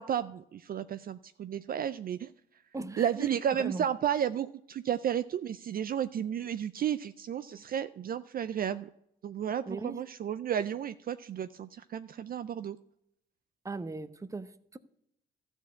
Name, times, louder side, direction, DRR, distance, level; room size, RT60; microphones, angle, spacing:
voice 1, 0.0-2.3 3.0-8.9 9.2-12.8, right 9 dB, 45° right, 12 dB, 0.4 m, -32 dB
voice 2, 2.7-3.9 7.5-7.6 9.7-10.0 13.6-14.8, right 3 dB, 15° right, 12 dB, 0.7 m, -39 dB
13.5 x 4.5 x 8.3 m, 0.75 s
cardioid pair, 90°, 20 cm